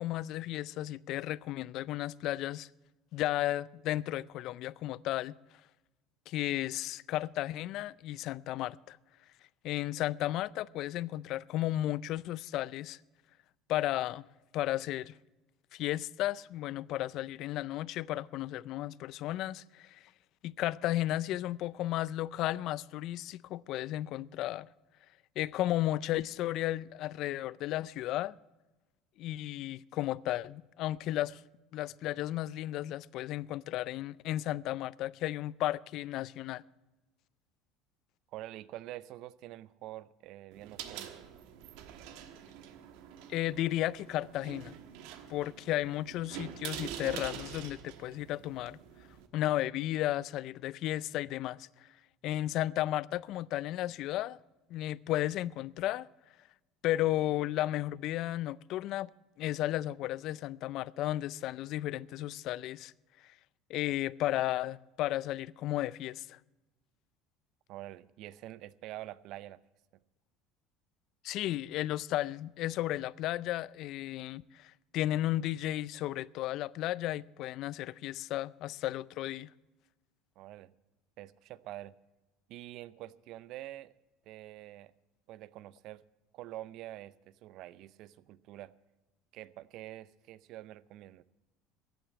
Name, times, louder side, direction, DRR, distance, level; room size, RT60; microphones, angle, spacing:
voice 1, 0.0-2.7 3.1-5.3 6.3-9.0 9.6-13.0 13.7-14.3 14.5-15.1 15.7-20.0 20.4-24.7 25.4-28.3 29.2-31.4 31.7-36.6 43.3-44.8 45.3-48.8 49.3-51.7 52.2-54.4 54.7-56.1 56.8-59.1 59.4-62.9 63.7-66.4 71.2-79.5, left 14 dB, 60° left, 0.4 m, -34 dB
voice 2, 38.3-41.1 67.7-69.6 80.4-80.7 81.2-81.9 82.5-83.9 84.3-84.9 85.3-86.0 86.3-88.7 89.3-91.2, right 15 dB, 60° right, 0.5 m, -46 dB
sound 1, 40.5-49.3, right 9 dB, 75° right, 1.3 m, -46 dB
14.5 x 9.0 x 7.2 m
supercardioid pair, 115°, 0 cm